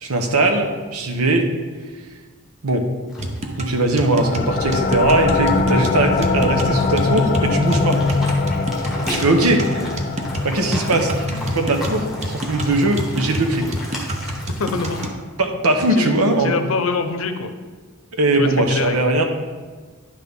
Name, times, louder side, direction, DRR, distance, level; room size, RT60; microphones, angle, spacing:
voice 1, 0.0-1.5 2.6-2.9 3.6-8.0 9.1-9.7 10.4-13.8 15.4-16.6 18.1-19.2, right 2 dB, 85° right, 4 dB, 1.0 m, -19 dB
sound 1, 3.1-15.1, left 1 dB, ahead, 1.4 m, -36 dB
sound 2, 3.2-15.2, right 1 dB, 30° right, 0.6 m, -28 dB
sound 3, 4.2-15.5, left 4 dB, 35° left, 0.4 m, -24 dB
voice 2, 14.6-15.0 15.9-16.1 16.4-17.5 18.3-19.0, left 4 dB, 70° left, 8 dB, 0.7 m, -24 dB
10.0 x 6.0 x 3.7 m, 1.4 s
head